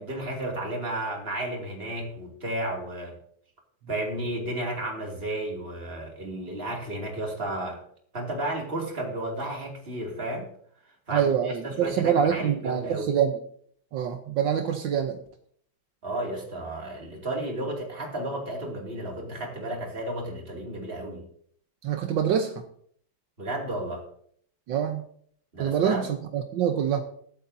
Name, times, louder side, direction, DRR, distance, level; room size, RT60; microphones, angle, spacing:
voice 1, 0.0-3.2 3.9-7.8 8.1-10.5 11.1-13.1 16.0-21.2 23.4-24.0 25.5-26.1, right 1 dB, 30° right, 0 dB, 2.7 m, -33 dB
voice 2, 11.1-13.4 13.9-15.2 21.8-22.6 24.7-25.0 25.6-27.0, right 8 dB, 80° right, 6 dB, 1.6 m, -25 dB
22.0 x 8.4 x 2.7 m, 0.62 s
omnidirectional pair, 2.0 m